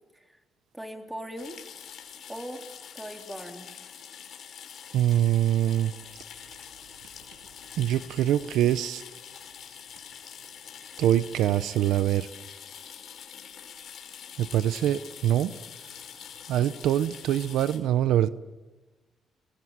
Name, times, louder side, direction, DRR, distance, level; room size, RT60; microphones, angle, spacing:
voice 1, 0.7-1.6 2.3-2.6 2.9-3.7, equal, 5° right, 3.6 m, -39 dB
sound 1, 1.4-17.8, left 8 dB, 65° left, 5.2 m, -45 dB
voice 2, 4.9-5.9 7.8-9.0 11.0-12.3 14.4-15.5 16.5-18.3, right 12 dB, 85° right, 0.8 m, -24 dB
28.5 x 22.0 x 7.5 m
cardioid pair, 90°, 0 cm